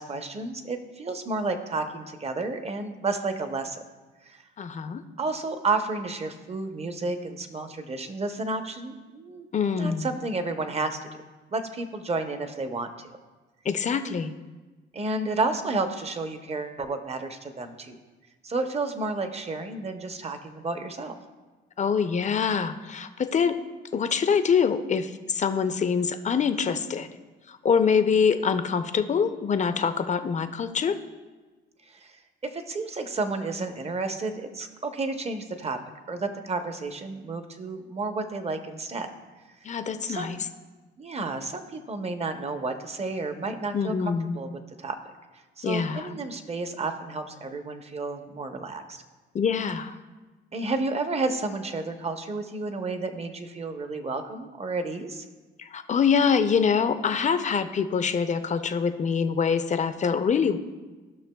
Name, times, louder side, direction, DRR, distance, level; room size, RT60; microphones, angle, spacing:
voice 1, 0.0-3.8 4.2-4.4 5.2-9.5 9.7-11.0 11.5-13.2 14.9-18.0 18.4-21.1 31.8-32.2 32.4-35.8 36.1-39.1 40.0-40.3 41.0-44.5 44.8-45.0 45.6-49.0 50.5-55.2, right 3 dB, 30° right, 7 dB, 0.8 m, -31 dB
voice 2, 4.6-5.0 9.5-10.1 13.6-14.3 21.8-23.6 23.9-27.1 27.5-31.0 39.6-40.4 43.7-44.4 45.6-46.1 49.3-50.0 55.6-60.6, left 6 dB, 35° left, 10 dB, 0.5 m, -25 dB
15.0 x 6.0 x 2.3 m, 1.3 s
cardioid pair, 90°, 20 cm